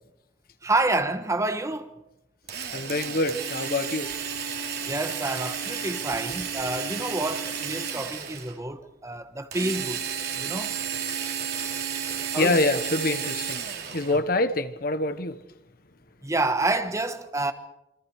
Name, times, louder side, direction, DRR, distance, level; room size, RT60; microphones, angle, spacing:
voice 1, 0.6-2.0 4.8-10.1 10.4-10.8 12.3-12.7 14.1-14.2 16.2-17.5, right 2 dB, 15° right, 1.2 m, -28 dB
Drill, 2.5-8.6 9.5-14.2, right 7 dB, 60° right, 3.4 m, -32 dB
voice 2, 2.7-4.1 12.1-13.6 13.9-15.4, left 2 dB, 55° left, 1.2 m, -26 dB
28.0 x 24.5 x 4.8 m
head